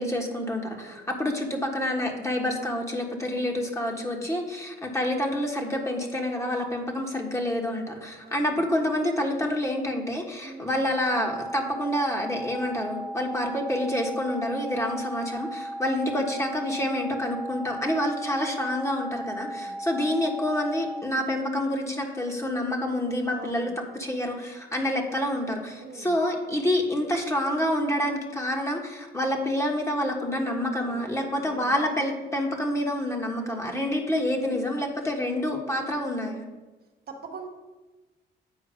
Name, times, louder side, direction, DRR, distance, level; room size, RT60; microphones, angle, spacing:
voice 1, 0.0-36.5, left 1 dB, 15° left, 1 dB, 1.3 m, -28 dB
voice 2, 0.6-1.1 3.9-4.3 8.2-8.6 10.4-10.9 15.8-16.0 19.2-19.8 23.3-23.8 25.8-26.1 30.8-31.7 33.4-33.8 37.1-37.5, right 3 dB, 50° right, 2 dB, 1.2 m, -44 dB
sound 1, 11.0-21.0, right 1 dB, 5° right, 1.1 m, -36 dB
8.3 x 4.6 x 5.0 m, 1.2 s
cardioid pair, 90°, 20 cm